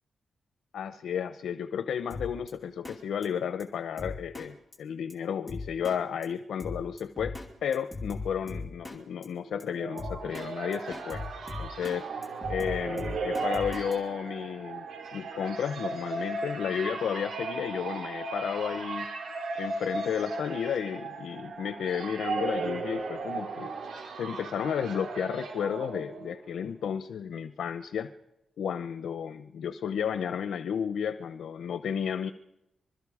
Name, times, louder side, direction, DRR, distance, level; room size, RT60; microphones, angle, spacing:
voice 1, 0.7-11.2 11.6-12.1 12.5-14.9 15.1-19.1 19.6-23.7 24.2-28.1 28.6-32.3, left 8 dB, 80° left, 11 dB, 0.8 m, -32 dB
Drum kit, 2.1-2.5 2.9-3.0 3.2-3.3 3.6-3.7 4.0-4.5 4.7-4.8 5.1-5.2 5.5-6.0 6.2-6.3 6.6-7.5 7.7-9.0 9.2-9.3 9.6-9.7 10.0-10.5 10.7-12.0 12.2-14.0, left 3 dB, 15° left, 2.5 m, -38 dB
sound 1, 9.5-26.5, right 3 dB, 75° right, 5.3 m, -36 dB
25.5 x 22.5 x 4.9 m, 0.90 s
wide cardioid pair, 180°, 0 cm